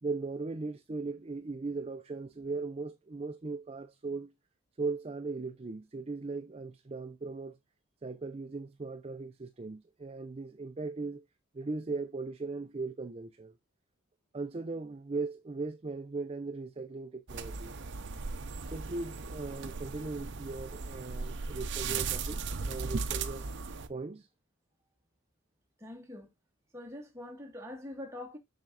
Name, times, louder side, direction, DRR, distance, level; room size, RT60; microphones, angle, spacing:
voice 1, 0.0-4.3 4.8-7.5 8.0-11.2 11.5-13.5 14.3-17.7 18.7-22.4 22.6-23.4 23.9-24.3, right 3 dB, 30° right, 0.4 m, -38 dB
sound 1, 17.3-23.9, right 4 dB, 55° right, 0.7 m, -37 dB
voice 2, 25.8-26.3 26.7-28.4, left 1 dB, 15° right, 1.6 m, -44 dB
7.4 x 5.9 x 2.5 m
head